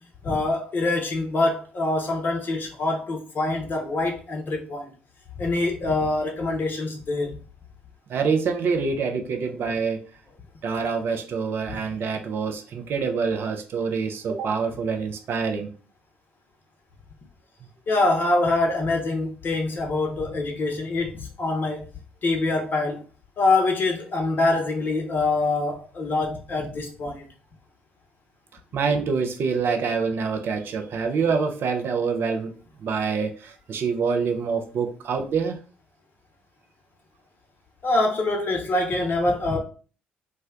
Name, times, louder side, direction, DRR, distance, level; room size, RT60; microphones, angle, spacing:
voice 1, 0.2-4.9 5.4-7.4 11.7-11.8 17.9-21.9 22.2-23.0 23.4-27.3 37.8-39.6, left 2 dB, 40° left, 0.7 m, -25 dB
voice 2, 8.1-10.0 10.6-15.7 28.7-32.5 32.8-35.6, right 5 dB, 50° right, 0.5 m, -26 dB
2.4 x 2.1 x 3.5 m
figure-of-eight pair, 45°, 5 cm